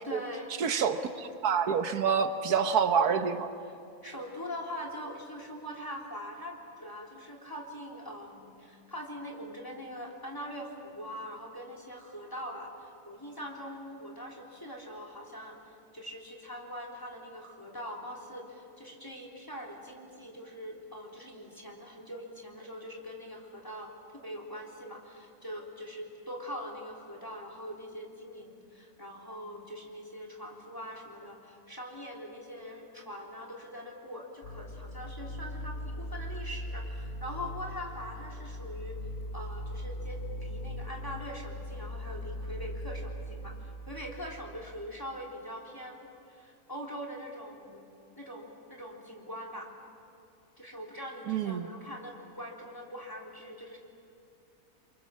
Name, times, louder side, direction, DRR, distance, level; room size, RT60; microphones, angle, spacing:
voice 1, 0.0-0.6 0.9-1.1 3.6-3.7 4.0-39.0 39.3-47.8 48.1-49.7 50.6-53.8, equal, 15° left, -2 dB, 3.3 m, -43 dB
voice 2, 0.6-3.5 51.3-51.7, right 6 dB, 80° right, 8 dB, 1.5 m, -27 dB
sound 1, 34.4-44.8, equal, 80° left, 2.8 m, -40 dB
28.5 x 23.0 x 7.4 m, 2.5 s
omnidirectional pair, 1.6 m